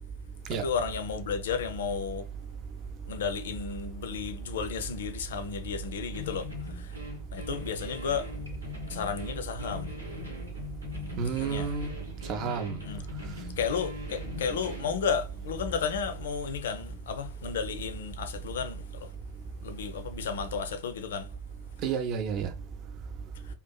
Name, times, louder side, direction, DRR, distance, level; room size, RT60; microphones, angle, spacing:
voice 1, 0.5-2.3 3.1-6.5 6.8-6.9 7.3-8.3 8.9-9.9 11.4-11.7 12.8-13.0 13.6-19.1 19.6-21.3, left 6 dB, 60° left, 0.3 m, -33 dB
sound 1, 6.1-15.0, left 4 dB, 80° right, 0.7 m, -42 dB
voice 2, 11.2-11.9 12.3-12.8 21.8-22.5, right 7 dB, 35° right, 0.5 m, -30 dB
2.6 x 2.3 x 2.2 m
figure-of-eight pair, 90°, 0 cm